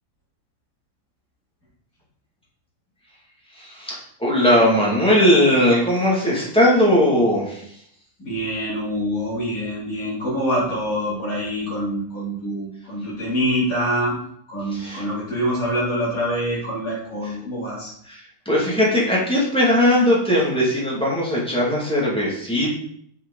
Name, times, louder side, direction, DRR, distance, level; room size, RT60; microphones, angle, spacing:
voice 1, 3.6-7.7 14.7-15.0 17.2-17.3 18.0-22.7, left 1 dB, 5° left, -6 dB, 1.2 m, -19 dB
voice 2, 8.2-14.2 14.5-17.9, equal, 25° left, -7 dB, 3.3 m, -25 dB
6.6 x 6.4 x 4.0 m, 0.68 s
omnidirectional pair, 4.0 m